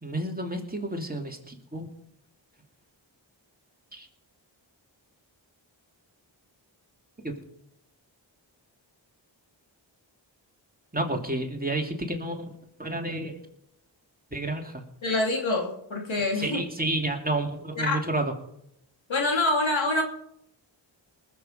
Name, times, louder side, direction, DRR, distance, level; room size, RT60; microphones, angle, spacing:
voice 1, 0.0-1.9 3.9-4.1 10.9-12.5 12.8-13.4 14.3-14.8 16.4-18.3, right 1 dB, 20° right, 2 dB, 2.9 m, -30 dB
voice 2, 15.0-16.6 17.8-18.0 19.1-20.0, left 2 dB, 75° left, 1 dB, 3.0 m, -25 dB
20.0 x 7.8 x 5.2 m, 0.75 s
cardioid pair, 40°, 47 cm